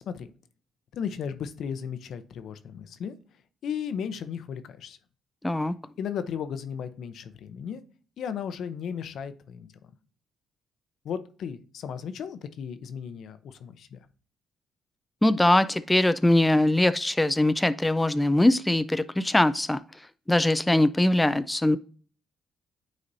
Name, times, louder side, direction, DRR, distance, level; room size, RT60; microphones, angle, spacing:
voice 1, 0.9-3.1 3.6-5.0 6.0-7.8 8.2-9.7 11.0-14.0, left 7 dB, 70° left, 0.6 m, -35 dB
voice 2, 5.4-5.7 15.2-19.8 20.3-21.8, left 1 dB, 10° left, 0.3 m, -22 dB
9.6 x 4.1 x 2.6 m
cardioid pair, 90°, 0 cm